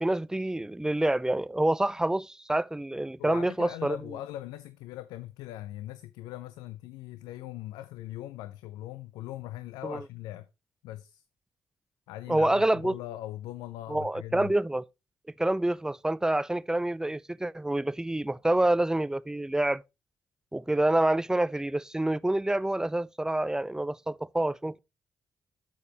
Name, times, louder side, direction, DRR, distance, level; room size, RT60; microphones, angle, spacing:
voice 1, 0.0-4.0 9.8-10.0 12.3-12.9 13.9-14.8 15.4-19.8 20.5-24.8, right 1 dB, 10° right, 0.4 m, -27 dB
voice 2, 3.2-10.5 10.8-11.2 12.1-14.5, left 14 dB, 85° left, 0.4 m, -40 dB
9.6 x 7.0 x 2.9 m
supercardioid pair, 50°, 7 cm